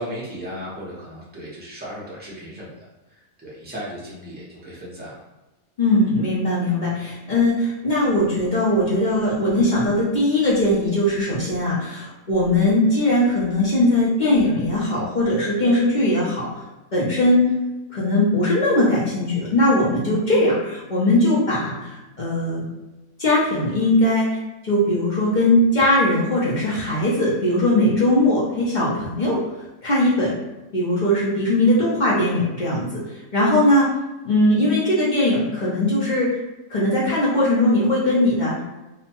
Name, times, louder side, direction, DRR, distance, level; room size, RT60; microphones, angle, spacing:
voice 1, 0.0-2.7 3.4-5.2, equal, 15° right, -7 dB, 0.3 m, -35 dB
voice 2, 5.8-16.6 16.9-17.5 17.9-22.6 23.2-29.4 29.8-30.3 30.7-33.9 34.2-36.4 36.7-38.6, left 1 dB, 55° left, -6 dB, 0.5 m, -20 dB
2.7 x 2.1 x 2.8 m, 1.0 s
omnidirectional pair, 1.6 m